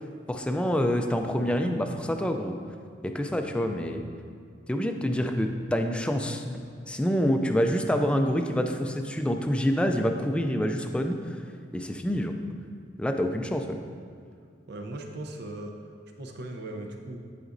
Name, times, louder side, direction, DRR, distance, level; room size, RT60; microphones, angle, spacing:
voice 1, 0.3-2.6 3.0-4.0 4.7-11.4 11.7-12.3 13.0-13.8, equal, 5° left, 5 dB, 0.3 m, -27 dB
voice 2, 14.7-15.7 16.2-17.2, right 1 dB, 60° right, 3 dB, 0.7 m, -38 dB
11.0 x 5.0 x 2.6 m, 2.3 s
head